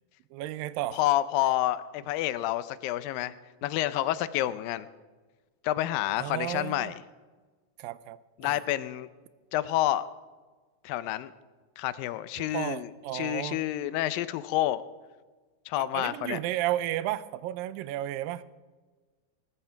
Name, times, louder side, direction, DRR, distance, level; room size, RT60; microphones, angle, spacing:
voice 1, 0.3-1.0 6.2-6.9 7.8-8.6 12.4-13.6 15.8-18.4, right 14 dB, 85° right, 15 dB, 2.3 m, -33 dB
voice 2, 0.9-3.3 3.6-4.9 5.6-7.0 8.4-9.1 9.5-10.0 10.8-11.3 11.8-14.8 15.7-16.4, left 14 dB, 85° left, 15 dB, 2.4 m, -29 dB
19.5 x 13.5 x 4.6 m, 1.3 s
omnidirectional pair, 4.0 m